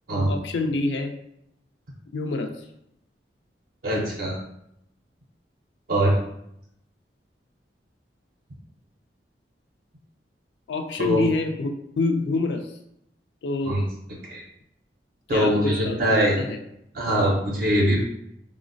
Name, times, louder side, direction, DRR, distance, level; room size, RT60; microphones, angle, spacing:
voice 1, 0.3-1.2 2.1-2.5 10.7-12.7 13.4-13.7 15.3-16.6, left 3 dB, 75° left, 5 dB, 0.3 m, -27 dB
voice 2, 3.8-4.4 5.9-6.2 11.0-11.3 13.6-13.8 14.3-14.4 15.3-16.4 16.9-18.0, equal, 55° right, -2 dB, 0.5 m, -22 dB
3.8 x 2.0 x 2.5 m, 0.76 s
head